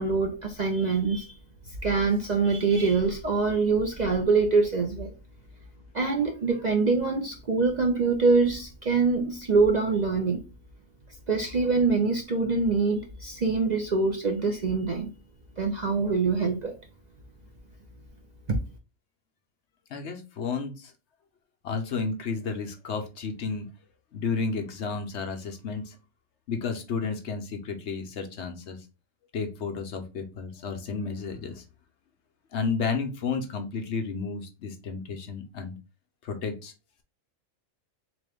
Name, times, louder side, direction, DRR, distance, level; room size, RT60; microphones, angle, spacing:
voice 1, 0.0-1.3 1.8-5.1 5.9-10.4 11.3-15.1 15.6-16.8 18.5-18.6, right 4 dB, 50° right, 0.6 m, -24 dB
voice 2, 19.9-20.9 21.6-23.7 24.1-26.0 26.5-28.8 29.3-31.6 32.5-35.8 36.2-36.7, left 5 dB, 65° left, 1.0 m, -32 dB
3.7 x 3.0 x 3.4 m
omnidirectional pair, 1.3 m